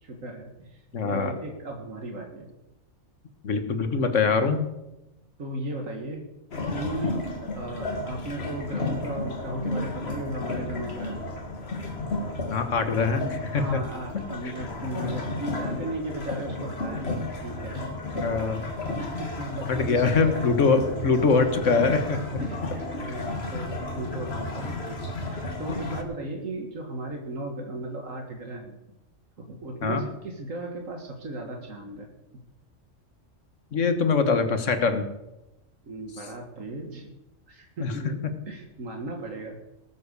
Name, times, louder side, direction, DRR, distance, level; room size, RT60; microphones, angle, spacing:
voice 1, 0.0-2.5 5.4-6.2 6.6-11.2 13.5-18.6 18.9-21.0 22.4-28.8 29.5-32.1 35.8-37.1 37.5-39.6, right 1 dB, 85° right, 1 dB, 2.1 m, -36 dB
voice 2, 0.9-1.3 3.4-4.7 12.5-13.8 18.2-18.7 19.7-22.4 23.0-23.1 29.8-30.0 33.7-35.1 37.8-37.9, left 4 dB, 70° left, 8 dB, 1.7 m, -23 dB
sound 1, 6.5-26.0, left 2 dB, 55° left, 2.0 m, -33 dB
19.0 x 7.9 x 6.7 m, 0.94 s
omnidirectional pair, 1.3 m